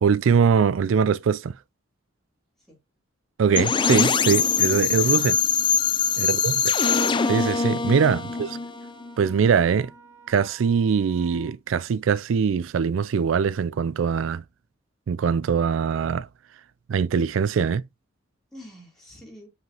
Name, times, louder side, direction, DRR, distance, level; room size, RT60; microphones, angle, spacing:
voice 1, 0.0-1.5 3.4-5.4 6.2-6.5 7.2-8.5 9.2-9.9 10.3-14.4 15.1-16.3 16.9-17.8, right 6 dB, 80° right, 0.4 m, -22 dB
sound 1, 3.6-9.4, left 6 dB, 25° left, 0.4 m, -23 dB
voice 2, 6.0-6.7 8.1-8.7 18.5-19.5, equal, ahead, 3.2 m, -47 dB
Wind instrument woodwind instrument, 6.0-11.5, right 6 dB, 15° right, 2.0 m, -53 dB
8.0 x 4.9 x 2.9 m
head